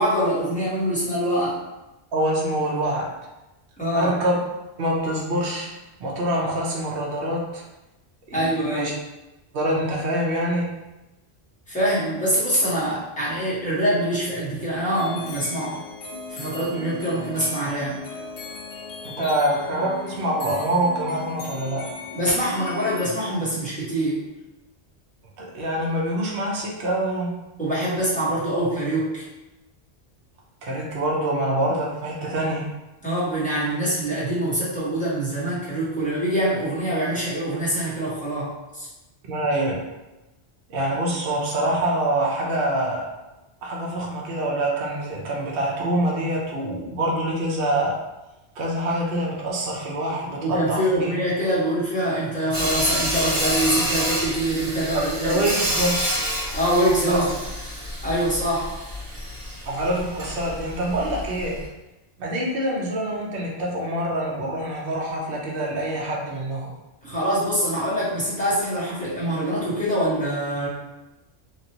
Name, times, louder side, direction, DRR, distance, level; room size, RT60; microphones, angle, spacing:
voice 1, 0.0-1.6 3.8-4.1 8.3-8.9 11.7-15.8 16.3-18.0 22.1-24.2 27.6-29.2 33.0-38.9 50.4-55.4 56.5-57.2 58.0-58.7 67.0-70.7, right 1 dB, 5° left, -10 dB, 1.1 m, -24 dB
voice 2, 2.1-3.1 3.9-4.3 4.8-5.7 6.0-7.6 8.3-8.9 9.5-10.7 19.0-21.8 25.4-27.3 30.6-32.7 39.3-39.8 40.7-43.1 43.6-48.0 48.6-51.1 54.9-56.0 57.1-57.3 59.7-61.6 62.2-66.7, right 1 dB, 60° right, -3 dB, 0.9 m, -25 dB
sound 1, 14.9-23.1, left 4 dB, 55° left, 0.7 m, -37 dB
Sawing, 52.5-61.6, equal, 25° right, 1.5 m, -28 dB
3.0 x 2.5 x 2.8 m, 1.0 s
omnidirectional pair, 1.1 m